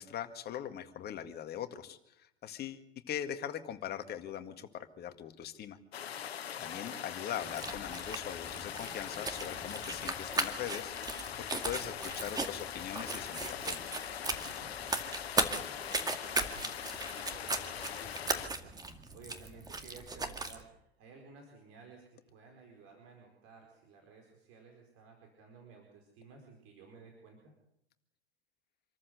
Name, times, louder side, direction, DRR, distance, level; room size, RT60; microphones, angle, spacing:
voice 1, 0.0-5.8 6.6-13.9, left 10 dB, 30° left, 9 dB, 1.9 m, -41 dB
sound 1, 5.9-18.5, left 9 dB, 70° left, 1.3 m, -42 dB
voice 2, 6.5-7.0 15.4-27.5, right 5 dB, 45° right, 2 dB, 4.8 m, -56 dB
sound 2, 7.4-20.6, right 3 dB, 10° right, 2.1 m, -37 dB
26.5 x 14.0 x 8.1 m, 0.78 s
figure-of-eight pair, 90°, 32 cm